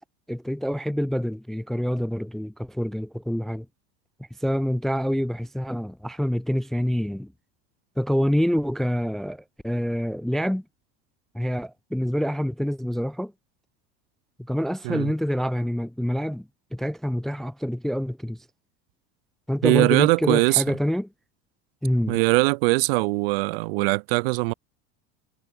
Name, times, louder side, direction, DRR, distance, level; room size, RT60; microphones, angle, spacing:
voice 1, 0.3-3.7 4.4-7.3 8.0-10.6 11.3-13.3 14.4-18.4 19.5-21.1 21.8-22.2, equal, ahead, 0.5 m, -26 dB
voice 2, 19.6-20.6 22.1-24.5, right 26 dB, 65° right, 1.1 m, -21 dB
cardioid pair, 170°, 31 cm